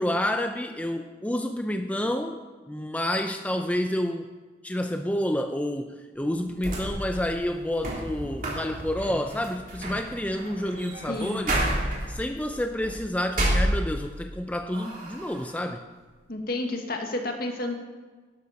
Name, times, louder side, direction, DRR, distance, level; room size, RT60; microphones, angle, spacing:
voice 1, 0.0-2.4 2.7-4.3 4.6-15.8, left 1 dB, 10° left, 5 dB, 0.5 m, -29 dB
sound 1, 6.3-14.3 14.7-15.5, right 1 dB, 45° right, 3.3 m, -31 dB
voice 2, 11.1-11.5 16.3-17.7, left 2 dB, 55° left, 3 dB, 1.7 m, -30 dB
12.0 x 12.0 x 4.2 m, 1.4 s
head